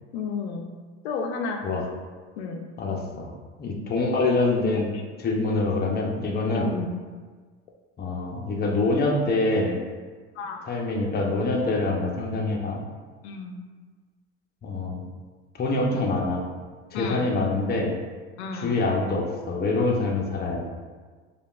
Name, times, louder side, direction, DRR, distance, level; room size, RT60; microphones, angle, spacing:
voice 1, 0.1-0.7 1.0-1.6 2.4-2.7 4.9-5.0 6.5-7.0 10.4-10.6 13.2-13.6 16.9-17.3 18.4-18.8, left 5 dB, 80° left, 2 dB, 0.5 m, -32 dB
voice 2, 2.8-3.3 3.6-4.9 5.2-6.7 8.0-9.8 10.7-12.8 14.6-15.1 15.6-16.4 16.9-17.9 18.6-20.6, left 2 dB, 30° left, -1 dB, 0.7 m, -25 dB
5.0 x 2.4 x 2.4 m, 1.4 s
hypercardioid pair, 80°, 33 cm